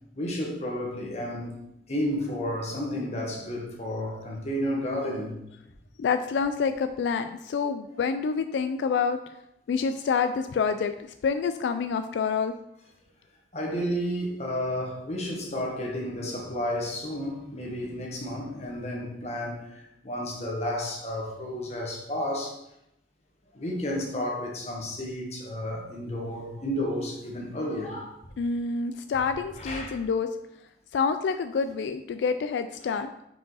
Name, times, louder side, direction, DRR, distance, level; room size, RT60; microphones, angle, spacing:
voice 1, 0.1-1.6 1.9-5.4 13.5-22.6 23.5-28.2 29.6-30.0 32.8-32.9, left 1 dB, 40° left, 1.2 m, -32 dB
voice 2, 6.0-9.2 9.7-10.9 11.2-12.5 28.4-30.3 30.9-33.1, left 5 dB, 85° left, 0.3 m, -27 dB
4.9 x 4.7 x 4.0 m
head